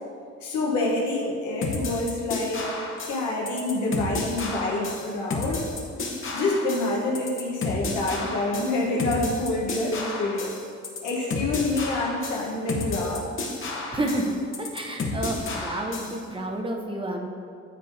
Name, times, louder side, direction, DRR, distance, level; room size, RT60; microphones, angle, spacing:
voice 1, 0.4-2.7 3.1-5.6 6.3-10.5 11.0-13.2, left 2 dB, 75° left, -3 dB, 1.0 m, -27 dB
sound 1, 1.6-16.2, left 3 dB, 40° left, 0.9 m, -32 dB
voice 2, 13.9-17.3, right 1 dB, 15° right, 2 dB, 0.8 m, -30 dB
9.5 x 3.8 x 2.6 m, 2.3 s
cardioid pair, 90°, 30 cm